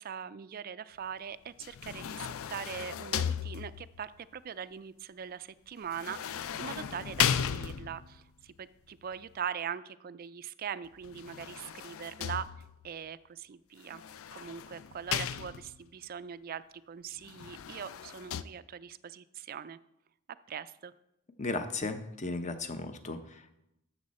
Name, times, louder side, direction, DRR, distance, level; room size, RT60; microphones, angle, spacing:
voice 1, 0.0-12.5 12.8-14.0 14.3-19.8 20.5-20.9, right 8 dB, 40° right, 15 dB, 0.3 m, -41 dB
door shower slide open close glass plastic slam rattle, 1.6-4.0 5.9-8.2 11.0-12.9 13.9-15.9 17.2-18.4, left 8 dB, 65° left, 0.4 m, -35 dB
voice 2, 21.4-23.6, left 3 dB, 30° left, 9 dB, 0.7 m, -36 dB
13.0 x 7.1 x 4.2 m, 0.86 s
head